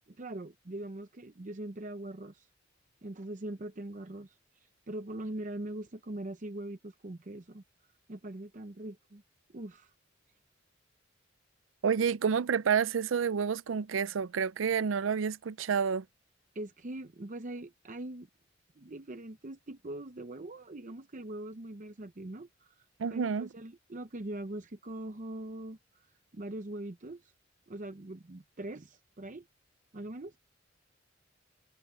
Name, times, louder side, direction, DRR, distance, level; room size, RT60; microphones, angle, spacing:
voice 1, 0.1-2.5 3.0-7.6 8.1-9.2 9.5-9.9 16.5-18.3 18.8-22.8 23.1-26.1 26.3-27.3 27.7-29.5 29.9-30.4, right 1 dB, 40° right, 0.8 m, -42 dB
voice 2, 11.8-16.0 23.0-23.5, right 6 dB, 85° right, 0.5 m, -29 dB
head